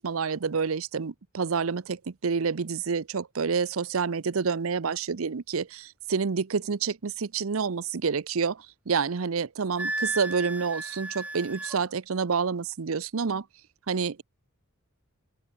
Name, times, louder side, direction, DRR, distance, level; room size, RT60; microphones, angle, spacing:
voice 1, 0.0-13.5 13.9-14.2, right 5 dB, 70° right, 0.6 m, -28 dB
Wind instrument woodwind instrument, 9.8-11.8, right 2 dB, 5° right, 0.4 m, -34 dB
open air
head